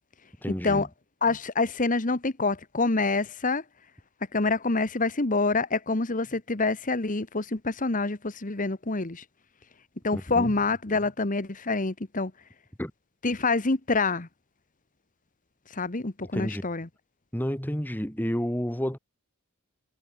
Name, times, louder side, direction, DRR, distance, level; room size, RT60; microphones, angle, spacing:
voice 1, 0.4-0.9 10.1-10.5 12.8-12.9 16.3-16.6 17.3-19.0, equal, 10° left, 2.4 m, -30 dB
voice 2, 1.2-3.6 4.3-9.2 10.0-12.3 13.2-14.3 15.7-16.9, left 3 dB, 35° left, 1.3 m, -26 dB
head